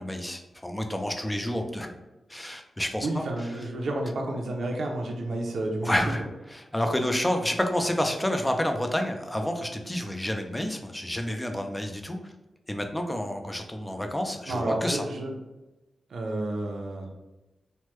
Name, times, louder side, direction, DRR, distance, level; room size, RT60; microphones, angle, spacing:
voice 1, 0.0-1.9 2.3-3.7 5.8-12.3 12.7-15.1, left 1 dB, 10° left, 4 dB, 0.3 m, -29 dB
voice 2, 3.0-5.9 14.5-15.3 16.1-17.1, right 2 dB, 65° right, 0 dB, 0.6 m, -30 dB
3.1 x 2.1 x 3.0 m, 1.0 s
wide cardioid pair, 160°, 0 cm